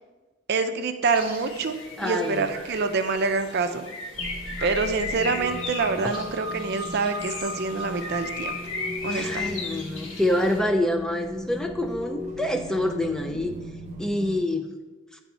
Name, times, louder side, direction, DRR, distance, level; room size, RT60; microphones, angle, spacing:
voice 1, 0.5-3.9 4.6-8.6 9.0-9.5, right 4 dB, 55° right, 8 dB, 0.5 m, -26 dB
Bird, 1.0-10.6, left 3 dB, 85° left, 1.8 m, -36 dB
voice 2, 2.0-2.5 9.1-13.5 14.0-14.7, left 1 dB, 5° left, 4 dB, 0.3 m, -26 dB
sound 1, 4.1-14.4, left 1 dB, 35° right, 0.9 m, -36 dB
9.5 x 3.5 x 4.1 m, 1.2 s
head